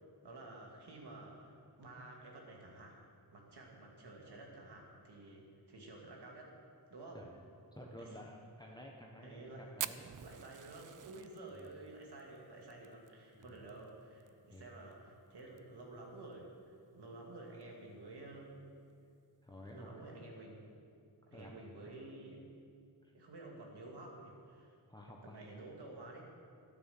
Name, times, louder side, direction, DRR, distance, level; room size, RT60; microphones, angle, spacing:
voice 1, 0.2-3.0 3.3-6.6 6.9-7.2 8.0-8.2 9.2-18.6 19.7-20.7 21.3-22.5 23.1-24.7 25.0-26.3, right 2 dB, 90° right, -1 dB, 2.4 m, -52 dB
voice 2, 7.7-9.5 9.7-10.1 13.3-13.5 14.5-14.7 19.4-19.9 21.3-21.6 21.8-22.0 23.0-23.1 24.9-25.4, left 1 dB, 10° left, -1 dB, 1.1 m, -52 dB
Fire, 9.8-14.3 14.5-14.6 14.9-15.0 15.4-15.8 16.3-16.4 17.5-17.6, right 9 dB, 55° right, 0.5 m, -45 dB
12.5 x 9.8 x 7.2 m, 2.4 s
wide cardioid pair, 105°, 39 cm